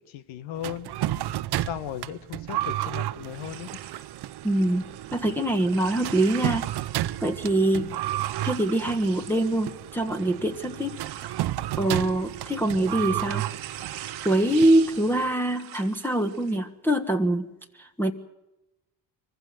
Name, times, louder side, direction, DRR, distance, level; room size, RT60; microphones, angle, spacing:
voice 1, 0.1-0.9 1.6-3.8, left 10 dB, 70° left, 13 dB, 1.5 m, -36 dB
sound 1, 0.6-15.3, right 14 dB, 50° right, 0.8 m, -32 dB
sound 2, 3.3-16.6, right 12 dB, 90° right, 1.8 m, -44 dB
voice 2, 4.4-4.8 5.1-6.7 7.2-7.9 8.4-11.0 11.8-13.4 14.2-17.5 17.7-18.1, right 1 dB, 5° left, 2 dB, 1.5 m, -24 dB
23.5 x 15.5 x 9.4 m, 0.97 s
hypercardioid pair, 55°, 49 cm